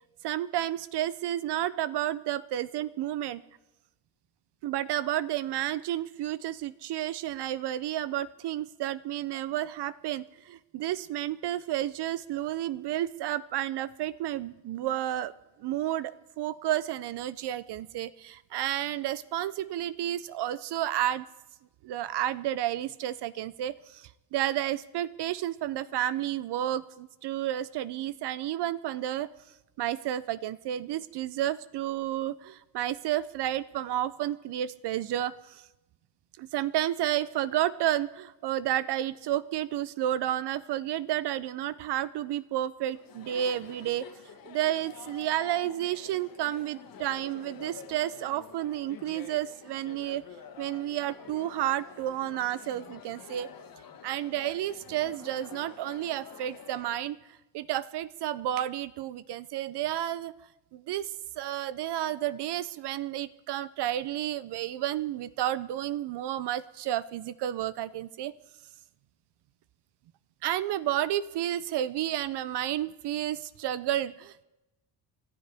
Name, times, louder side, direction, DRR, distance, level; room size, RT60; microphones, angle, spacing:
voice 1, 0.2-3.4 4.6-15.3 15.6-21.3 21.8-29.3 29.8-35.6 36.4-44.1 44.4-50.2 50.6-53.5 54.0-57.2 57.5-60.3 60.7-68.3 70.4-74.4, right 12 dB, 60° right, 17 dB, 0.5 m, -31 dB
Chatter, 42.9-57.0, left 7 dB, 45° left, 1.4 m, -48 dB
29.5 x 12.5 x 3.4 m, 1.0 s
cardioid pair, 130°, 48 cm